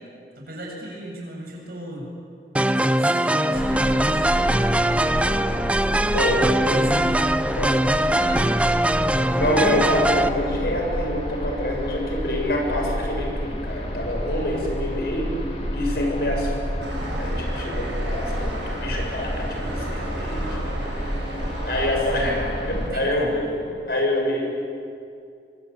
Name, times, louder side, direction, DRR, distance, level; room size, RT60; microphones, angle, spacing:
voice 1, 0.4-2.1 2.6-4.8 6.6-7.1 8.2-8.5 22.0-23.6, right 1 dB, 55° right, -1 dB, 7.9 m, -36 dB
sound 1, 2.6-10.3, right 1 dB, 5° right, 0.6 m, -21 dB
sound 2, 3.5-22.9, equal, 35° left, 3.6 m, -30 dB
voice 2, 6.1-6.8 7.6-7.8 9.3-15.3 15.7-16.8 17.2-21.1 21.6-23.4 23.9-24.4, left 1 dB, 60° left, 0 dB, 6.9 m, -26 dB
sound 3, 16.8-23.4, right 1 dB, 90° right, 7.7 m, -35 dB
25.0 x 24.5 x 8.7 m, 2.4 s
head